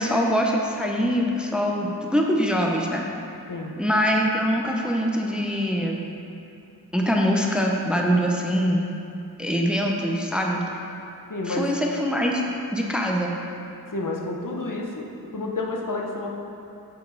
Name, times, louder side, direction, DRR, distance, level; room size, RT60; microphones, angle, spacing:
voice 1, 0.0-3.0 3.8-6.0 6.9-8.9 9.4-10.6 11.5-12.4 12.7-13.3, equal, ahead, 0 dB, 0.6 m, -23 dB
voice 2, 11.3-11.7 13.9-15.1 15.3-16.3, left 2 dB, 55° left, -1 dB, 0.8 m, -29 dB
6.9 x 5.2 x 3.9 m, 2.8 s
wide cardioid pair, 50°, 38 cm